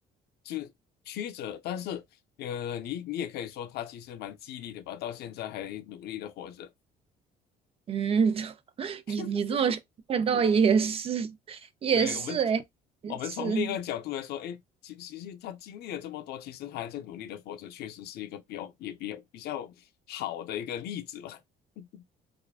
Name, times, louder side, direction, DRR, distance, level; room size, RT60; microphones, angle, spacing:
voice 1, 1.1-2.1 2.4-6.7 9.1-9.6 11.9-12.4 13.1-21.4 21.8-22.0, left 11 dB, 70° left, 0.5 m, -37 dB
voice 2, 7.9-9.8 10.1-12.6 13.0-13.7, right 6 dB, 35° right, 0.3 m, -26 dB
2.5 x 2.2 x 2.3 m
cardioid pair, 110°, 17 cm